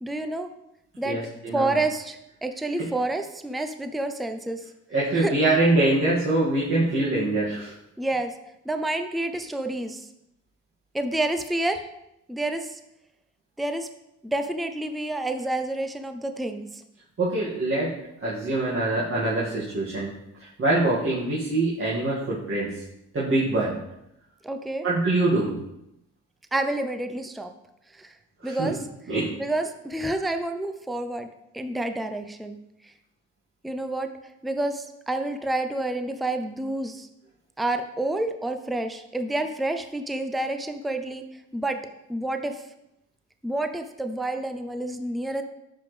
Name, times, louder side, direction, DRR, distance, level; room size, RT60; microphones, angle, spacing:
voice 1, 0.0-0.5 1.0-1.2 1.5-4.6 5.2-5.3 8.0-8.3 8.7-10.1 10.9-11.8 12.3-12.8 13.6-13.9 14.2-16.8 24.4-24.8 26.5-27.5 28.0-28.1 28.4-28.8 29.4-31.3 31.5-32.6 32.8-32.9 33.6-34.1 34.4-37.1 37.6-41.2 41.5-41.8 42.1-42.6 43.4-45.4, right 2 dB, ahead, 7 dB, 0.5 m, -29 dB
voice 2, 1.0-1.7 2.8-2.9 4.9-7.7 17.2-17.9 18.2-20.1 20.4-22.8 23.1-23.8 24.8-25.5 28.4-28.7 29.1-29.3, right 2 dB, 45° right, -7 dB, 2.1 m, -24 dB
10.0 x 5.2 x 3.3 m, 0.84 s
cardioid pair, 90°, 30 cm